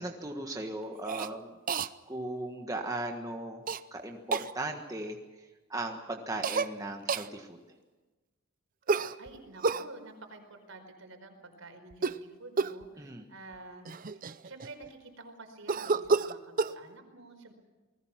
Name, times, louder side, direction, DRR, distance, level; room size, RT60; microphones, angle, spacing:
voice 1, 0.0-1.5 2.1-3.6 3.9-5.2 5.7-7.6 13.0-13.2, right 2 dB, 15° right, 3 dB, 1.5 m, -37 dB
Cough, 1.0-1.3 1.7-1.9 3.7-3.8 4.3-4.5 6.4-6.7 7.1-7.3 8.9-9.9 11.9-12.2 12.6-12.8 13.5-13.6 13.8-14.9 15.7-16.8, right 4 dB, 40° right, 0.6 m, -30 dB
voice 2, 9.2-13.9 14.4-17.5, right 2 dB, 70° right, 5 dB, 4.8 m, -49 dB
28.5 x 20.0 x 5.9 m, 1.2 s
head